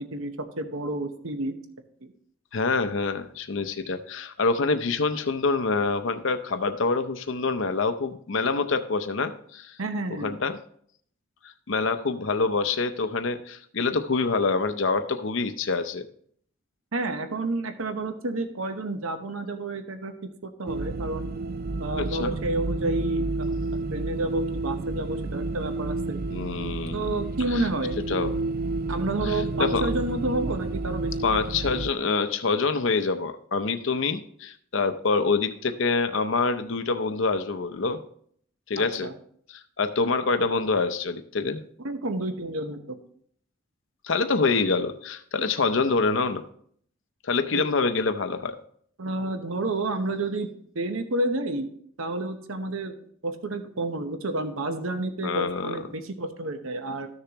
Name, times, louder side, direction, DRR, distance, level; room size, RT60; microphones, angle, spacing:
voice 1, 0.0-1.6 2.0-2.1 9.8-10.3 16.9-20.1 20.4-21.3 21.8-26.2 26.9-28.0 28.9-31.1 38.8-39.1 41.8-43.0 47.5-47.6 49.0-50.5 50.7-51.7 52.0-57.1, right 2 dB, 75° right, 8 dB, 1.0 m, -30 dB
voice 2, 2.5-9.8 10.2-10.6 11.4-16.1 22.0-22.3 26.3-27.1 27.5-27.7 28.1-28.4 29.2-29.9 31.2-38.0 38.7-39.1 39.5-41.6 44.0-46.4 47.2-48.6 55.2-55.8, left 4 dB, 65° left, 10 dB, 0.6 m, -26 dB
sound 1, 20.7-31.9, right 3 dB, 45° right, 0.3 m, -30 dB
13.5 x 6.7 x 2.9 m, 0.62 s
head